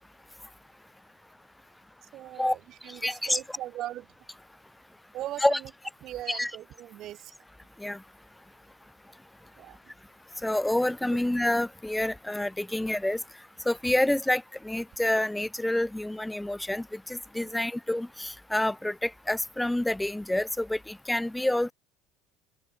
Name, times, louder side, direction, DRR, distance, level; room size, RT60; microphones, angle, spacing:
voice 1, 2.1-4.1 5.1-5.7 6.0-7.3 9.6-9.9 17.4-17.6, right 13 dB, 55° right, 0.3 m, -39 dB
voice 2, 2.9-3.6 5.4-5.6 6.3-6.5 7.8-8.0 10.4-13.2 13.7-21.7, left 1 dB, 5° left, 0.5 m, -28 dB
open air
supercardioid pair, 100°, 0 cm